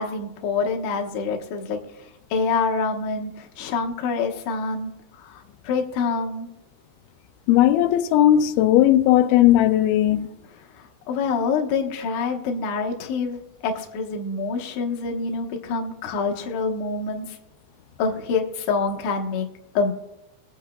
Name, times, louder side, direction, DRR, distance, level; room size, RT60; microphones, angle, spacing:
voice 1, 0.0-1.8 2.3-4.9 5.2-6.5 10.8-17.4 18.0-19.5 19.7-19.9, left 4 dB, 65° left, 2.0 m, -26 dB
voice 2, 7.5-10.3, left 12 dB, 90° left, 2.5 m, -17 dB
21.5 x 8.2 x 2.3 m
omnidirectional pair, 4.3 m